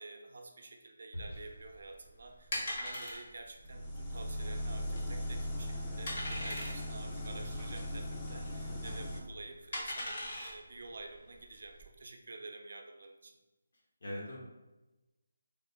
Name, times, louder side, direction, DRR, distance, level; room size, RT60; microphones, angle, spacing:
voice 1, 0.0-13.4, right 3 dB, 65° right, 3 dB, 0.5 m, -49 dB
sound 1, 1.1-2.5, equal, 85° left, 1.1 m, -47 dB
sound 2, 1.2-11.9, left 1 dB, 45° left, 1.0 m, -42 dB
sound 3, 3.6-9.2, left 1 dB, 15° left, 0.4 m, -39 dB
voice 2, 14.0-14.4, left 1 dB, 65° left, -5 dB, 1.2 m, -42 dB
3.7 x 2.1 x 3.3 m, 1.1 s
figure-of-eight pair, 165°, 0 cm